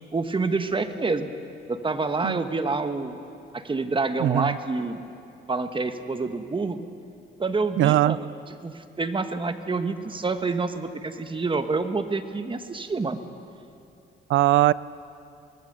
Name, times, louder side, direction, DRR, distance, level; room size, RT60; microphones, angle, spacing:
voice 1, 0.1-1.3 1.7-3.2 3.5-5.0 5.5-6.8 7.4-13.2, right 3 dB, 25° right, 9 dB, 1.3 m, -27 dB
voice 2, 4.2-4.6 7.8-8.2 14.3-14.7, right 15 dB, 75° right, 20 dB, 0.5 m, -20 dB
24.0 x 19.0 x 6.8 m, 2.6 s
cardioid pair, 90°, 20 cm